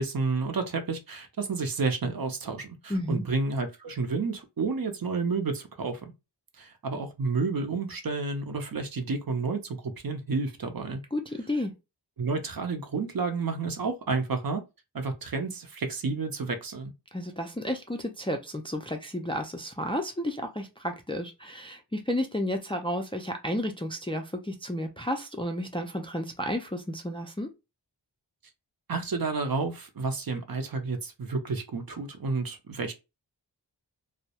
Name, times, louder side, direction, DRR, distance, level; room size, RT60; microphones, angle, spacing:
voice 1, 0.0-6.1 6.6-11.0 12.2-14.6 14.9-16.9 28.9-32.9, right 4 dB, 55° right, 0.6 m, -30 dB
voice 2, 2.9-3.2 11.1-11.7 17.1-27.5, left 1 dB, 15° left, 0.3 m, -32 dB
2.2 x 2.0 x 2.8 m
wide cardioid pair, 55°, 44 cm